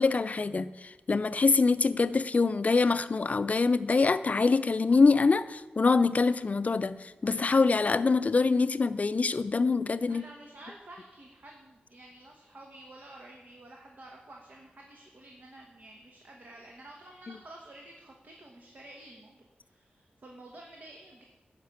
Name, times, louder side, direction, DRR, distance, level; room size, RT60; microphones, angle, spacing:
voice 1, 0.0-10.2, left 4 dB, 45° left, 13 dB, 0.4 m, -25 dB
voice 2, 10.1-21.2, right 1 dB, 55° right, 0 dB, 1.2 m, -50 dB
10.5 x 5.1 x 6.6 m, 1.1 s
wide cardioid pair, 75°, 3 cm